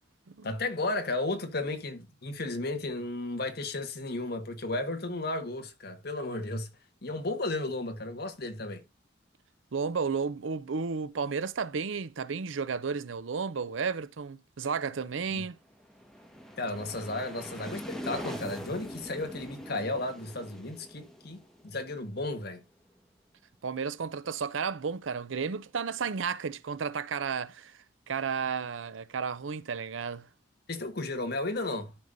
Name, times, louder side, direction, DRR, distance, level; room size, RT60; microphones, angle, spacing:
voice 1, 0.4-6.7 7.0-8.8 15.3-15.4 16.6-22.6 30.7-31.9, left 2 dB, 55° left, 1.5 m, -34 dB
voice 2, 9.7-15.6 23.6-27.7 28.1-30.3, right 5 dB, 90° right, 0.6 m, -33 dB
sound 1, 15.7-22.4, equal, 5° left, 1.4 m, -43 dB
12.5 x 5.3 x 2.6 m
head